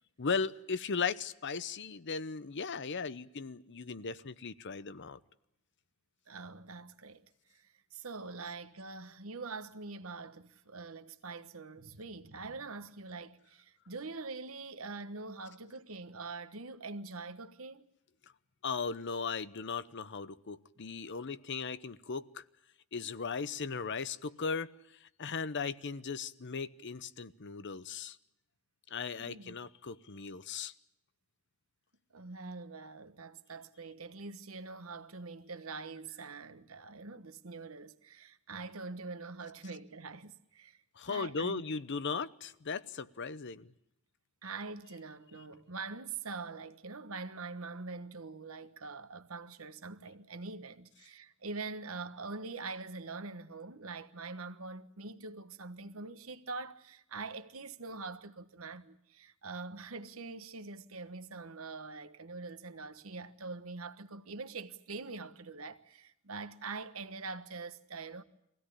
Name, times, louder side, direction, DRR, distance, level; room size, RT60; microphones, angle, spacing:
voice 1, 0.2-5.2 18.6-22.4 22.9-24.7 25.0-28.2 28.9-30.7 41.0-43.7, left 5 dB, 55° left, 0.8 m, -37 dB
voice 2, 6.3-17.9 29.2-29.6 32.1-40.8 41.1-41.6 44.4-68.2, right 3 dB, 75° right, 1.3 m, -44 dB
23.5 x 17.0 x 10.0 m
head